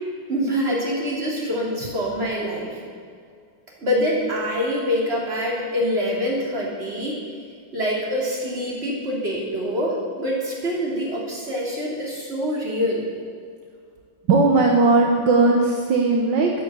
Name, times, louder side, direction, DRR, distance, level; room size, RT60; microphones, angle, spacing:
voice 1, 0.3-2.7 3.8-7.2 7.7-13.1, equal, 30° right, -3 dB, 3.4 m, -25 dB
voice 2, 14.3-16.5, right 3 dB, 70° right, 0 dB, 1.8 m, -17 dB
12.0 x 10.5 x 8.2 m, 2.2 s
omnidirectional pair, 2.1 m